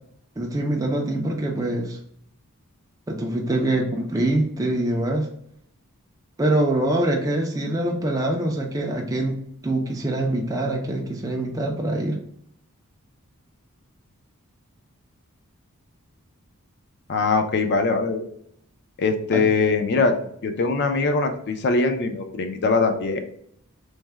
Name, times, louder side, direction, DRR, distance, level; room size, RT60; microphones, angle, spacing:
voice 1, 0.4-2.0 3.1-5.3 6.4-9.4 9.6-12.2 19.3-19.4, right 1 dB, 15° right, 0 dB, 0.3 m, -24 dB
voice 2, 17.1-18.2 19.0-20.2 20.4-23.2, left 4 dB, 50° left, 6 dB, 0.4 m, -22 dB
3.2 x 2.1 x 3.3 m, 0.69 s
head